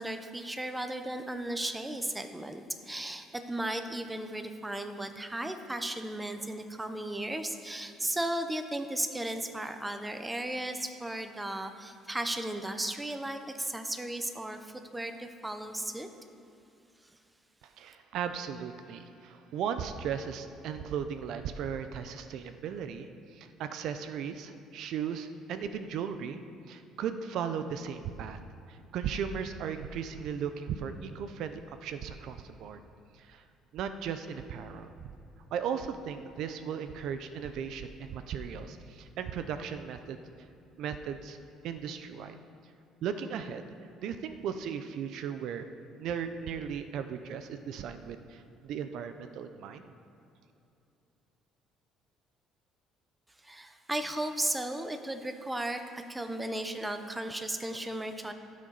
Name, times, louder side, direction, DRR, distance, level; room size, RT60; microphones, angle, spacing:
voice 1, 0.0-16.1 53.4-58.3, right 1 dB, 10° right, 8 dB, 0.7 m, -35 dB
voice 2, 17.6-26.4 26.7-28.4 28.7-32.8 33.1-33.4 33.7-34.9 35.5-40.2 40.8-41.4 41.6-42.4 43.0-43.7 44.0-45.7 46.0-49.9, right 7 dB, 70° right, 9 dB, 0.5 m, -36 dB
15.5 x 6.3 x 4.0 m, 2.7 s
cardioid pair, 100°, 0 cm